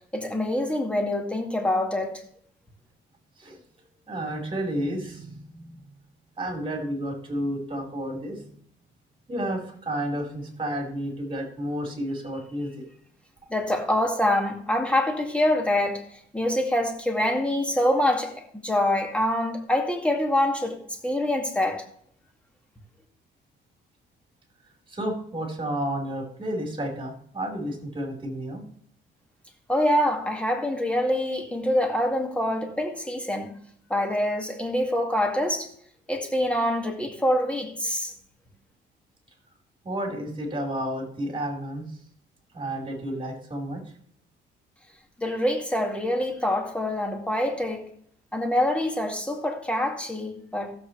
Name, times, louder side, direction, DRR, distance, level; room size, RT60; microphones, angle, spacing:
voice 1, 0.1-2.2 13.5-20.8 21.0-21.8 29.7-33.5 33.9-35.7 36.1-38.1 45.2-47.9 48.3-50.7, left 1 dB, 5° left, 2.3 m, -25 dB
voice 2, 4.1-5.8 6.4-8.6 9.3-12.7 24.9-28.6 39.8-42.0 42.5-43.8, right 1 dB, 25° right, 4.5 m, -31 dB
16.0 x 7.7 x 3.3 m
cardioid pair, 90°, 20 cm